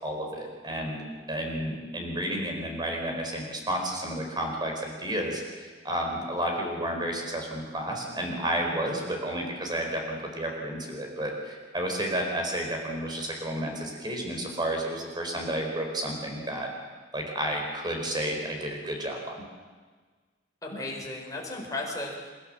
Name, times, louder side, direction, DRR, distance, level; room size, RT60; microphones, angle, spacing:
voice 1, 0.0-1.0 1.3-16.7 17.1-19.4, right 1 dB, 25° right, 2 dB, 4.5 m, -31 dB
voice 2, 20.6-22.3, left 2 dB, 20° left, -1 dB, 5.1 m, -35 dB
28.5 x 15.0 x 7.7 m, 1.4 s
head